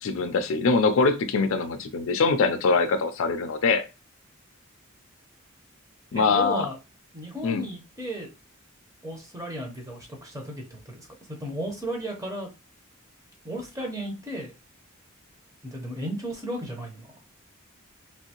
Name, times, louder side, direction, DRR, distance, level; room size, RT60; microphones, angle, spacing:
voice 1, 0.0-3.8 6.1-6.7 7.4-7.7, left 4 dB, 65° left, 0.4 m, -23 dB
voice 2, 6.1-6.8 7.1-8.3 9.0-12.5 13.4-14.5 15.6-17.2, right 1 dB, 15° right, 0.9 m, -35 dB
3.2 x 2.6 x 2.9 m
head